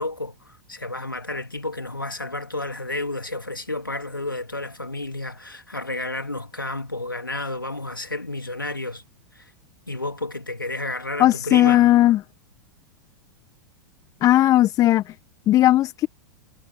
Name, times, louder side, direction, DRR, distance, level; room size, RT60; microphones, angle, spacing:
voice 1, 0.0-9.0 9.3-9.5 9.9-11.9, left 2 dB, 90° left, 3.0 m, -31 dB
voice 2, 11.2-12.2 14.2-15.1 15.5-16.1, left 14 dB, 30° left, 1.6 m, -17 dB
figure-of-eight pair, 95°, 11 cm